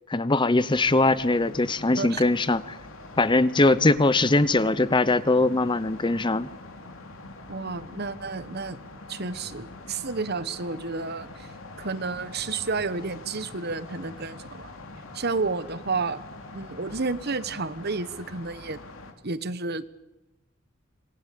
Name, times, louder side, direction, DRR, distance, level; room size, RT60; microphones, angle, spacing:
voice 1, 0.1-2.8 3.2-6.5, left 2 dB, 25° left, 16 dB, 0.8 m, -21 dB
sound 1, 0.7-19.1, left 2 dB, 85° left, 3.2 m, -44 dB
voice 2, 1.9-2.3 7.5-8.8 9.1-11.5 11.8-14.7 15.1-16.2 16.5-18.8 19.2-19.9, right 4 dB, 50° right, 14 dB, 1.2 m, -31 dB
27.0 x 21.0 x 8.6 m, 1.0 s
head